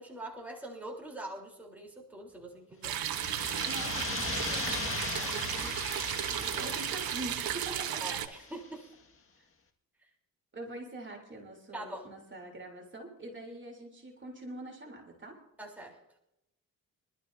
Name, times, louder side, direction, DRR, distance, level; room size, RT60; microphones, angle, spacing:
voice 1, 0.0-3.0 8.0-8.9 11.7-12.1 15.6-16.0, right 1 dB, 5° right, -2 dB, 3.6 m, -43 dB
sound 1, 2.8-8.3, right 10 dB, 75° right, 1.1 m, -34 dB
sound 2, 2.9-8.6, left 4 dB, 35° left, 1.9 m, -39 dB
voice 2, 3.6-5.8 6.1-8.0 10.5-15.4, right 1 dB, 30° right, 0 dB, 3.3 m, -44 dB
25.0 x 12.5 x 2.7 m, 0.84 s
cardioid pair, 105°, 36 cm